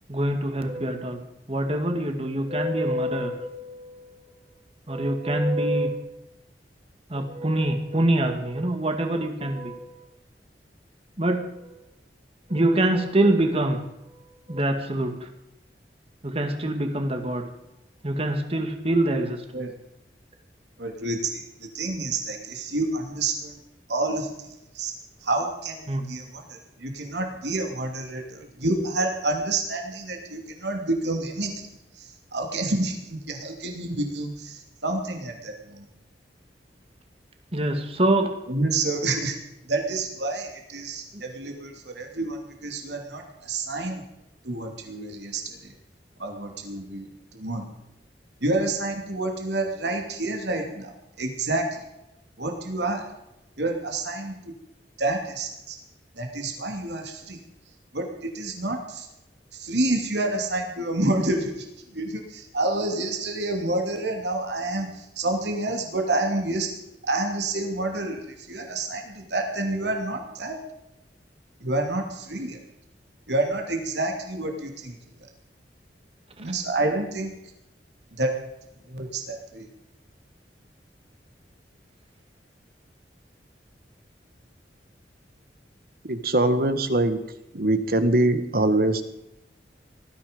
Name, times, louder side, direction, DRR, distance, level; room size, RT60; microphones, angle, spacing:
voice 1, 0.1-1.2 1.5-4.1 4.9-6.0 7.1-10.0 11.2-11.4 12.5-13.8 14.5-15.1 16.2-17.4 18.0-19.4 25.9-26.0 37.5-38.3, right 1 dB, 35° right, 5 dB, 2.2 m, -25 dB
voice 2, 20.8-21.4 21.7-23.6 23.9-24.3 24.7-24.9 25.2-31.5 32.0-35.8 38.5-39.3 39.7-44.0 44.4-45.4 46.2-47.1 47.3-47.7 48.4-50.9 51.2-51.6 52.4-53.0 53.6-54.3 55.0-55.8 56.2-57.4 57.9-59.1 59.5-61.7 61.9-66.7 67.0-70.6 71.6-72.6 73.3-75.0 76.4-77.3 78.1-78.3 78.9-79.7, right 2 dB, 75° right, 3 dB, 2.8 m, -28 dB
voice 3, 86.0-87.2 87.5-89.0, right 2 dB, 55° right, 9 dB, 1.7 m, -22 dB
19.5 x 14.0 x 5.3 m, 0.87 s
head